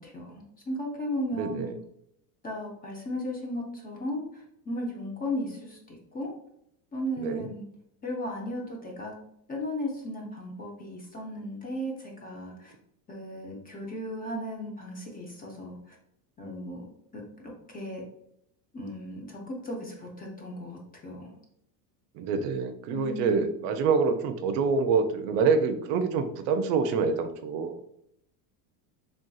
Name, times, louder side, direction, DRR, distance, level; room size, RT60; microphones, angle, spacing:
voice 1, 0.0-1.7 2.4-6.3 6.9-7.7 8.0-9.1 9.5-12.7 13.1-16.0 16.4-16.8 17.1-18.0 18.7-21.3 22.9-23.5, left 1 dB, 20° left, -1 dB, 0.5 m, -36 dB
voice 2, 1.3-1.7 7.2-7.5 22.1-27.8, right 5 dB, 70° right, 8 dB, 0.5 m, -26 dB
3.3 x 2.6 x 2.3 m, 0.76 s
supercardioid pair, 115°, 50 cm